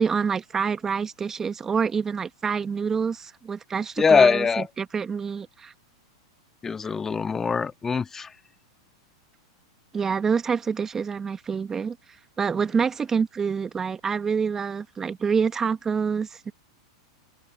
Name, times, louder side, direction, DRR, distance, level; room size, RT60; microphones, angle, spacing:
voice 1, 0.0-4.5 4.8-5.7 6.8-6.9 9.9-12.0 12.4-16.5, right 6 dB, 20° right, 1.5 m, -26 dB
voice 2, 4.0-4.7 6.6-8.3, left 5 dB, 20° left, 1.6 m, -22 dB
open air
hypercardioid pair, 100°, 2 cm